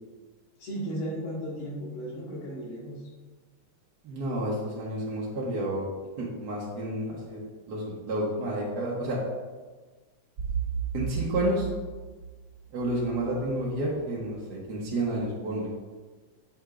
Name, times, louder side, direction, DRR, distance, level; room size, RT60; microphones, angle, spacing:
voice 1, 0.6-3.0, right 1 dB, 75° left, -5 dB, 2.7 m, -35 dB
voice 2, 4.0-5.9 6.2-7.4 7.7-9.2 10.9-11.7 12.7-15.7, right 1 dB, 55° right, -5 dB, 1.5 m, -30 dB
7.8 x 6.9 x 2.5 m, 1.3 s
omnidirectional pair, 2.4 m